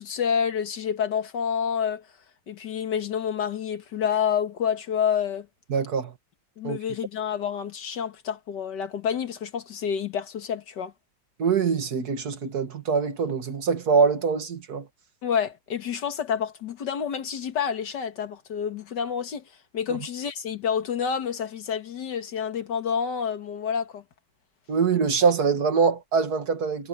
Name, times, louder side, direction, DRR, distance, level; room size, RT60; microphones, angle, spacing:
voice 1, 0.0-2.0 2.5-5.5 6.6-10.9 15.2-19.4 19.7-24.0, left 7 dB, 80° left, 2.2 m, -28 dB
voice 2, 5.7-6.1 6.6-6.8 11.4-14.9 24.7-26.9, right 5 dB, 65° right, 2.2 m, -24 dB
omnidirectional pair, 1.8 m